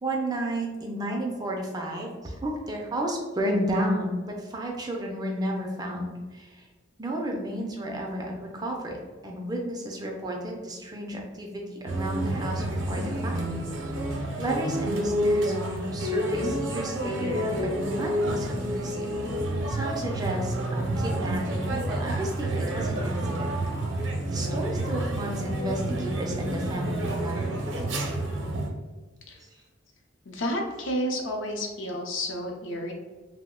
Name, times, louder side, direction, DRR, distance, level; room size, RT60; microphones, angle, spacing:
voice 1, 0.0-6.7 7.0-9.0 9.2-13.6 14.4-19.1 19.7-23.6 24.3-27.4 29.3-29.6, right 1 dB, 20° right, 0 dB, 0.4 m, -32 dB
sound 1, 11.9-28.7, right 1 dB, 65° right, 0.6 m, -29 dB
voice 2, 30.3-32.9, equal, 70° left, 2 dB, 0.5 m, -31 dB
3.0 x 2.0 x 3.5 m, 1.3 s
head